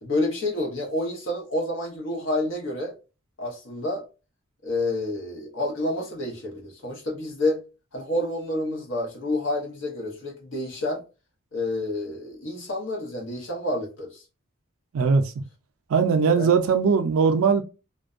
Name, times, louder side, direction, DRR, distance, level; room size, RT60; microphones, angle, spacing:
voice 1, 0.0-2.9 3.4-4.0 4.6-7.6 7.9-11.0 11.5-14.2 16.4-16.5, left 1 dB, 65° left, 1.0 m, -29 dB
voice 2, 14.9-15.3 15.9-17.6, right 5 dB, 80° right, 0.4 m, -20 dB
2.5 x 2.1 x 2.4 m
head